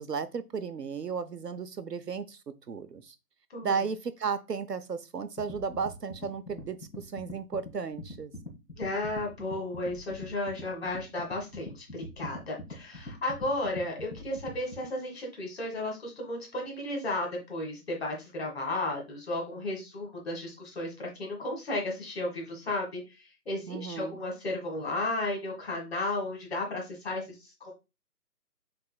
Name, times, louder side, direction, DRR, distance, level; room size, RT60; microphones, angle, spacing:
voice 1, 0.0-3.1 3.6-8.3 23.7-24.2, right 6 dB, 80° right, 0.8 m, -34 dB
voice 2, 3.5-3.8 8.8-23.0 23.5-27.7, left 2 dB, 40° left, 1.9 m, -34 dB
sound 1, 5.4-14.9, left 1 dB, 85° left, 1.3 m, -44 dB
6.7 x 3.4 x 2.2 m
figure-of-eight pair, 145°, 48 cm